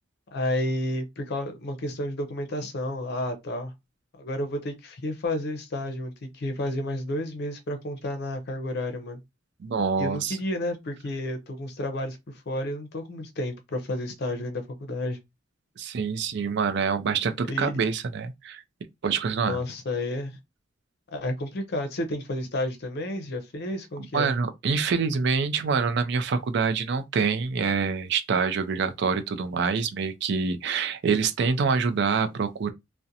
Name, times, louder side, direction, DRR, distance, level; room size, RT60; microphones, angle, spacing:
voice 1, 0.3-3.7 4.2-9.2 10.0-15.2 17.5-17.9 19.4-20.4 21.1-24.3, left 1 dB, 60° left, 0.5 m, -31 dB
voice 2, 9.6-10.4 15.8-18.6 19.0-19.6 24.1-32.7, right 5 dB, 65° right, 0.4 m, -26 dB
2.4 x 2.1 x 2.7 m
head